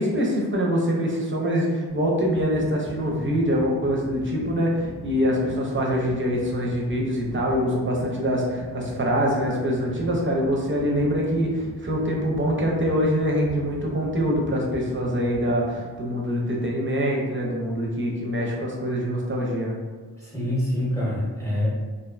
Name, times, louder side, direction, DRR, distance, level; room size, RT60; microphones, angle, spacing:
voice 1, 0.0-19.8, equal, 30° right, -2 dB, 0.5 m, -24 dB
sound 1, 1.9-16.1, equal, 30° left, 0.7 m, -41 dB
voice 2, 20.2-21.7, left 1 dB, 5° left, -7 dB, 0.8 m, -25 dB
2.4 x 2.1 x 2.4 m, 1.4 s
cardioid pair, 55°, 41 cm